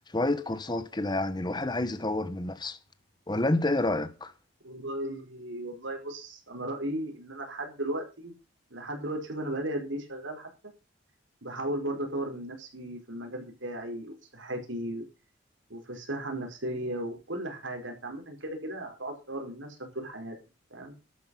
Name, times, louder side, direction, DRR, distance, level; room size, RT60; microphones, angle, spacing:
voice 1, 0.1-2.8 3.3-4.3, left 2 dB, 20° left, 1.0 m, -29 dB
voice 2, 4.6-8.3 8.7-10.5 11.4-15.0 15.7-20.4 20.7-20.9, right 1 dB, 75° right, 4.8 m, -36 dB
12.0 x 10.0 x 5.6 m
head